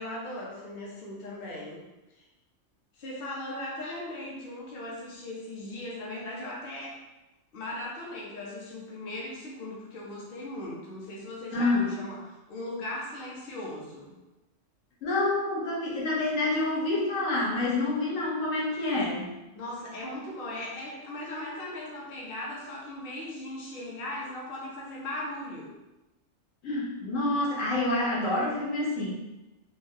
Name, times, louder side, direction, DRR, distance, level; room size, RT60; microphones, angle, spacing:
voice 1, 0.0-1.8 2.2-2.3 2.9-7.0 7.5-14.1 19.5-25.7, left 1 dB, 50° left, -4 dB, 0.8 m, -38 dB
voice 2, 11.5-11.9 15.0-19.3 26.6-29.1, left 2 dB, 80° left, -5 dB, 1.2 m, -27 dB
3.2 x 2.2 x 2.7 m, 1.0 s
omnidirectional pair, 1.3 m